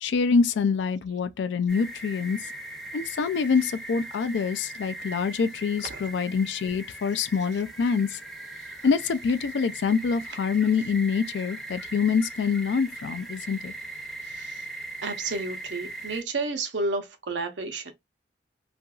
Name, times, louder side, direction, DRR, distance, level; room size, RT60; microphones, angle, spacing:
voice 1, 0.0-2.4 2.9-8.1 8.8-13.7, left 5 dB, 80° left, 0.3 m, -25 dB
sound 1, 1.7-16.2, right 2 dB, ahead, 0.5 m, -40 dB
voice 2, 15.0-17.9, right 3 dB, 85° right, 0.7 m, -31 dB
2.8 x 2.5 x 2.3 m
head